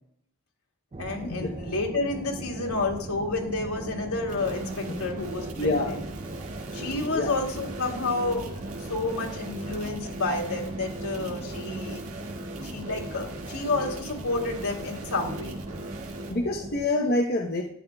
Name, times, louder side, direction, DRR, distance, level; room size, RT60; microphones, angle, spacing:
sound 1, 0.9-16.9, right 2 dB, 25° right, 0.5 m, -39 dB
voice 1, 1.0-6.0 6.7-8.4 8.9-12.0 12.6-15.6, left 3 dB, 80° left, 0 dB, 2.7 m, -30 dB
sound 2, 4.3-16.3, right 1 dB, 65° right, 1.9 m, -40 dB
voice 2, 5.6-5.9 7.0-7.3 16.3-17.6, left 2 dB, 45° left, 0 dB, 0.9 m, -26 dB
12.5 x 10.5 x 2.3 m, 0.69 s
head